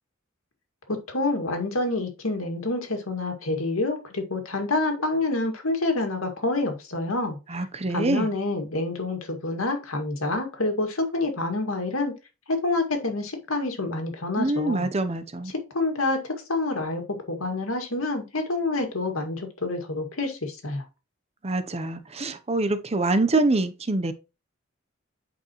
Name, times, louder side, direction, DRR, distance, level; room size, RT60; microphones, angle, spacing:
voice 1, 0.9-7.4 7.9-12.1 12.5-14.9 15.5-20.8, left 2 dB, 90° left, 2.1 m, -27 dB
voice 2, 7.5-8.3 14.4-15.5 21.4-24.1, right 2 dB, 30° right, 0.8 m, -25 dB
8.7 x 5.3 x 3.1 m
head